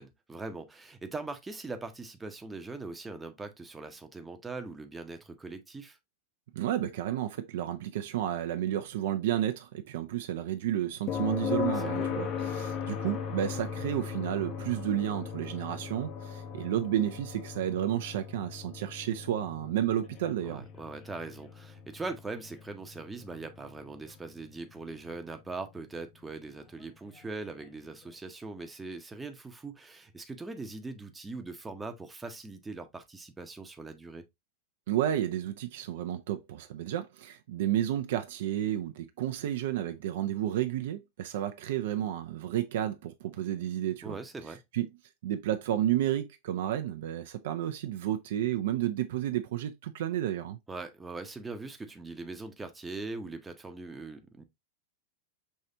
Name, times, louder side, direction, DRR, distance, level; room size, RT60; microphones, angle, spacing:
voice 1, 0.0-6.0 11.8-12.1 12.4-12.5 20.5-34.2 44.0-44.6 50.7-54.4, right 3 dB, 10° right, 0.7 m, -41 dB
voice 2, 6.5-12.3 12.5-20.6 34.9-44.2 44.7-44.9 45.2-50.6, right 11 dB, 55° right, 0.5 m, -31 dB
sound 1, 11.1-24.9 27.2-27.3, left 7 dB, 35° left, 0.7 m, -38 dB
5.5 x 3.2 x 2.7 m
figure-of-eight pair, 90°, 0 cm